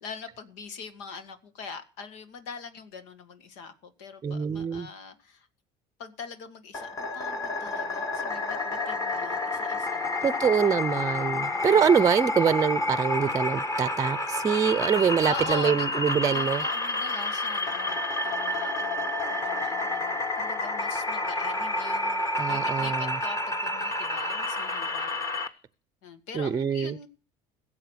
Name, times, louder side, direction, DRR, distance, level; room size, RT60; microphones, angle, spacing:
voice 1, 0.0-5.5 6.0-10.2 11.3-11.8 15.3-15.9 16.3-25.2 26.0-27.1, left 4 dB, 85° left, 1.9 m, -42 dB
voice 2, 4.2-4.9 10.2-16.6 22.4-23.2 26.3-27.0, right 7 dB, 25° right, 0.6 m, -24 dB
sound 1, 6.7-25.5, left 2 dB, 20° left, 1.4 m, -29 dB
16.5 x 7.5 x 6.4 m
supercardioid pair, 110°, 14 cm